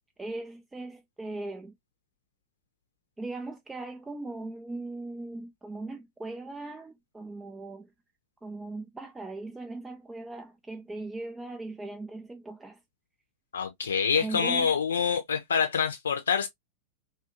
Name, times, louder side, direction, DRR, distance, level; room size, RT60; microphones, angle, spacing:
voice 1, 0.2-1.7 3.2-7.9 8.4-12.8 14.1-14.7, right 2 dB, 10° right, 0.4 m, -39 dB
voice 2, 13.5-16.5, left 6 dB, 70° left, 0.6 m, -26 dB
2.6 x 2.4 x 2.5 m
figure-of-eight pair, 90°, 0 cm